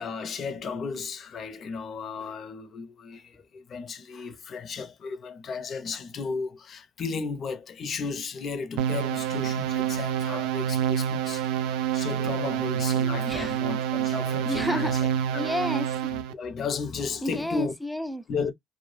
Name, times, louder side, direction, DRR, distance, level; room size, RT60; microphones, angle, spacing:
voice 1, 0.0-11.5 11.9-15.5 16.1-17.7 18.3-18.5, left 5 dB, 45° left, 0.6 m, -34 dB
sound 1, 8.8-16.3, right 9 dB, 85° right, 0.3 m, -27 dB
voice 2, 13.2-13.6 14.5-15.0 15.3-16.1 17.2-18.2, left 1 dB, ahead, 0.4 m, -31 dB
2.2 x 2.0 x 3.1 m
cardioid pair, 95°, 0 cm